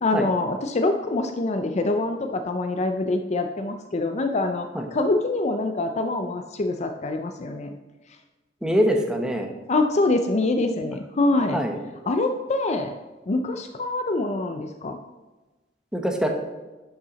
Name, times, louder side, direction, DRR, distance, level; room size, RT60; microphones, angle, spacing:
voice 1, 0.0-7.7 9.7-11.6 12.1-12.9 13.3-15.0, left 2 dB, 40° left, 7 dB, 0.5 m, -25 dB
voice 2, 8.6-9.5 11.5-11.8 15.9-16.3, equal, 5° right, 3 dB, 0.9 m, -23 dB
11.0 x 5.7 x 4.0 m, 1.2 s
head